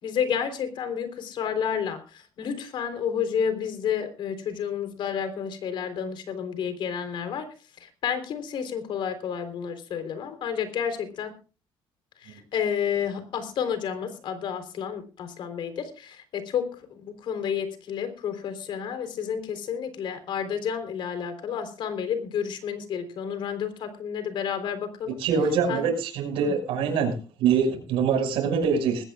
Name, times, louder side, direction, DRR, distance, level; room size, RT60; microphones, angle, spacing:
voice 1, 0.0-7.5 7.8-11.3 12.2-25.2 25.7-25.9 26.4-26.5, left 7 dB, 65° left, 9 dB, 3.6 m, -30 dB
voice 2, 25.2-27.1 27.4-29.0, right 6 dB, 90° right, 5 dB, 5.8 m, -24 dB
20.5 x 17.5 x 2.4 m, 0.35 s
cardioid pair, 125°, 9 cm